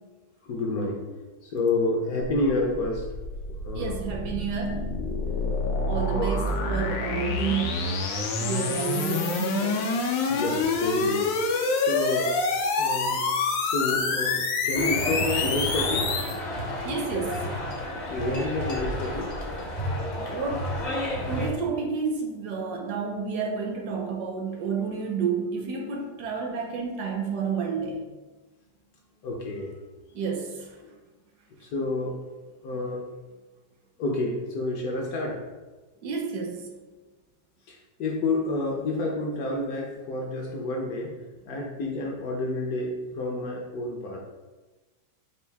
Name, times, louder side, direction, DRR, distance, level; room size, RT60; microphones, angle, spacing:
voice 1, 0.4-1.1 1.4-3.1 3.5-4.0 5.9-6.4 6.7-6.9 10.3-11.3 11.8-12.3 12.8-13.2 13.6-16.1 18.1-19.3 25.8-26.0 26.6-26.9 29.2-29.7 31.6-32.2 32.6-33.0 34.0-35.4 37.7-41.1 41.5-44.2, left 2 dB, 70° left, -1 dB, 0.9 m, -29 dB
sound 1, 2.3-16.4, left 3 dB, 90° left, 1.3 m, -27 dB
voice 2, 3.7-4.9 5.9-8.0 8.4-9.9 16.8-17.5 20.2-20.7 21.3-28.0 30.1-30.7 36.0-36.7, right 5 dB, 70° right, 1 dB, 1.1 m, -30 dB
sound 2, 14.7-21.5, equal, 50° left, 0.5 m, -31 dB
4.5 x 2.5 x 3.3 m, 1.2 s
omnidirectional pair, 1.9 m